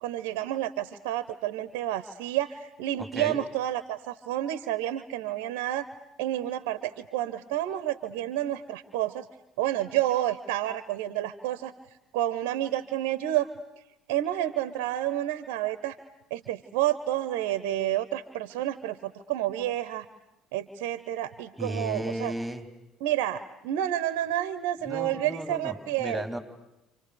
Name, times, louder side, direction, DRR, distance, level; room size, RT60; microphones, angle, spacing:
voice 1, 0.0-5.9 6.2-9.2 9.6-11.7 12.1-13.5 14.1-16.0 16.3-20.0 20.5-22.3 23.0-26.2, right 13 dB, 70° right, 14 dB, 0.9 m, -29 dB
voice 2, 3.0-3.4 21.6-22.6 24.9-26.4, right 1 dB, 5° right, 7 dB, 3.9 m, -34 dB
29.5 x 27.5 x 6.9 m, 0.93 s
hypercardioid pair, 60°, 0 cm